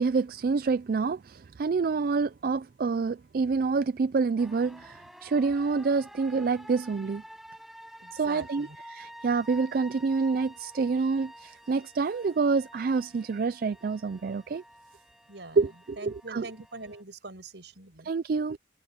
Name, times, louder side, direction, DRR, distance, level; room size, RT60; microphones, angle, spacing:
voice 1, 0.0-7.2 8.1-14.6 15.6-16.5 18.0-18.6, right 4 dB, 55° right, 0.4 m, -27 dB
sound 1, 4.4-17.0, equal, ahead, 5.4 m, -50 dB
voice 2, 8.0-8.8 15.3-15.6 16.0-18.1, right 2 dB, 75° right, 5.4 m, -43 dB
head